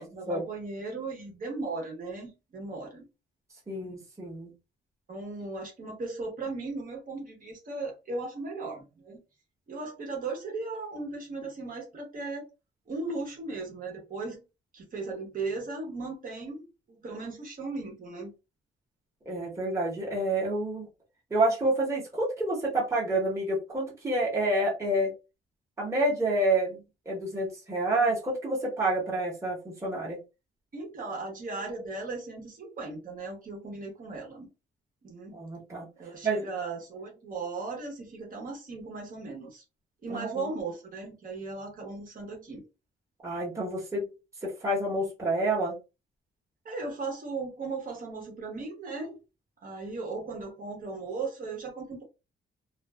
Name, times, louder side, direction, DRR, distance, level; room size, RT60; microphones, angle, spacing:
voice 1, 0.0-3.0 3.8-4.0 5.1-9.2 9.7-12.4 12.9-14.4 14.7-18.3 30.7-34.5 35.0-35.4 36.0-39.6 40.0-42.6 46.6-49.2 49.6-52.0, right 3 dB, 45° right, 0.9 m, -37 dB
voice 2, 3.7-4.5 19.3-20.9 21.3-25.1 25.8-26.8 27.1-30.2 35.3-35.9 36.2-36.4 40.1-40.4 43.2-44.0 44.4-45.8, right 1 dB, 15° right, 1.0 m, -28 dB
2.5 x 2.2 x 2.2 m
cardioid pair, 115°, 21 cm